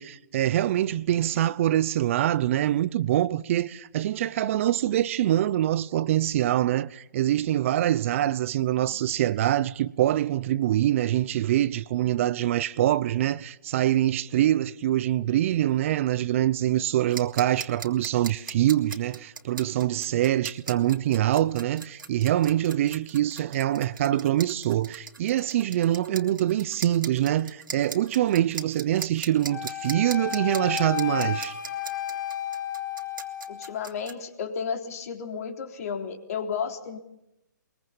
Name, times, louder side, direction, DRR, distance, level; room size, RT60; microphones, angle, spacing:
voice 1, 0.0-31.5, right 12 dB, 40° right, 0.7 m, -24 dB
sound 1, 17.1-34.1, right 5 dB, 85° right, 3.0 m, -39 dB
Wind instrument woodwind instrument, 29.5-33.8, left 11 dB, 75° left, 3.2 m, -32 dB
voice 2, 33.5-37.0, left 6 dB, 50° left, 3.7 m, -33 dB
23.0 x 22.5 x 7.2 m
hypercardioid pair, 145°, 11 cm